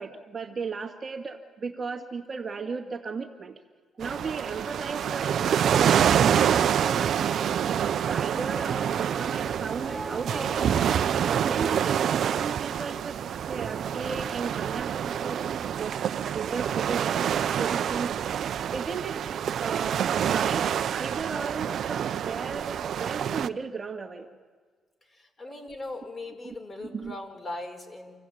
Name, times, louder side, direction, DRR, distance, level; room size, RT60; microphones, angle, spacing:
voice 1, 0.0-3.6 4.0-7.8 8.1-10.7 11.2-13.2 13.5-19.2 19.6-24.4 26.4-26.5 26.8-27.2, right 5 dB, 35° right, 3 dB, 2.2 m, -35 dB
sound 1, 4.0-23.5, right 9 dB, 65° right, 0.7 m, -27 dB
sound 2, 4.5-12.5, right 2 dB, 10° right, 1.0 m, -43 dB
voice 2, 25.0-28.2, left 2 dB, 30° left, 5 dB, 4.6 m, -40 dB
27.5 x 15.5 x 8.8 m, 1.5 s
cardioid pair, 90°, 0 cm